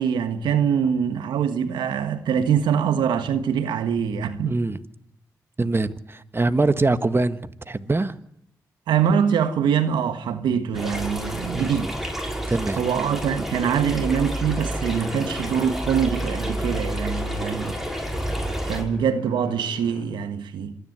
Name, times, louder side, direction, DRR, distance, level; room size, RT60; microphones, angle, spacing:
voice 1, 0.0-4.5 8.9-11.9 12.8-17.8 18.6-20.7, right 7 dB, 90° right, 1.5 m, -24 dB
voice 2, 4.4-4.8 5.6-8.1 11.5-11.8 12.5-12.8, right 3 dB, 30° right, 1.6 m, -23 dB
sound 1, 10.7-18.8, right 1 dB, 5° right, 6.7 m, -29 dB
sound 2, 12.1-20.0, left 3 dB, 85° left, 4.4 m, -42 dB
26.0 x 11.0 x 9.4 m
supercardioid pair, 45°, 8 cm